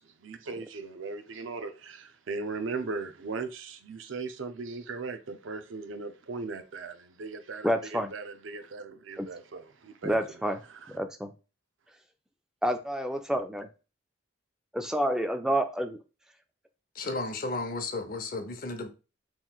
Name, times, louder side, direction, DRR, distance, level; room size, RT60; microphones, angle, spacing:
voice 1, 0.2-10.2 10.7-10.9, right 4 dB, 85° right, 0.5 m, -38 dB
voice 2, 7.6-8.1 9.2-9.3 10.0-10.6 10.9-11.3 12.6-13.7 14.7-16.0, equal, 5° right, 0.3 m, -29 dB
voice 3, 16.9-18.9, left 2 dB, 45° left, 0.7 m, -33 dB
5.5 x 3.0 x 2.3 m
head